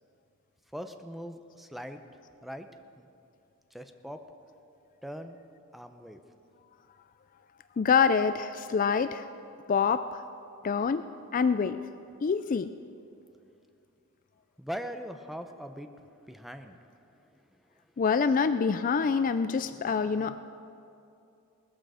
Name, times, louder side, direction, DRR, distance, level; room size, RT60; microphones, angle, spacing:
voice 1, 0.7-2.0 2.4-2.7 3.0-3.1 3.7-4.2 5.0-5.4 5.7-6.2 14.6-15.9 16.3-17.0 19.3-20.4, equal, ahead, 7 dB, 0.7 m, -41 dB
voice 2, 7.8-9.3 9.7-10.2 10.6-11.1 11.3-11.8 12.2-12.7 18.0-20.4, left 5 dB, 40° left, 11 dB, 0.4 m, -26 dB
19.0 x 14.0 x 5.0 m, 2.6 s
head